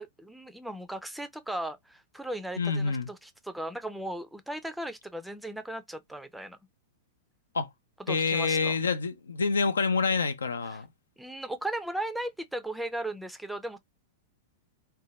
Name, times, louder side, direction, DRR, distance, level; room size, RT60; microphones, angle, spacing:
voice 1, 0.0-6.6 8.1-8.8 11.2-13.8, right 1 dB, 5° right, 0.4 m, -37 dB
voice 2, 2.6-3.1 7.5-7.7 8.1-10.9, left 4 dB, 75° left, 0.4 m, -27 dB
2.6 x 2.2 x 3.0 m
figure-of-eight pair, 100°, 0 cm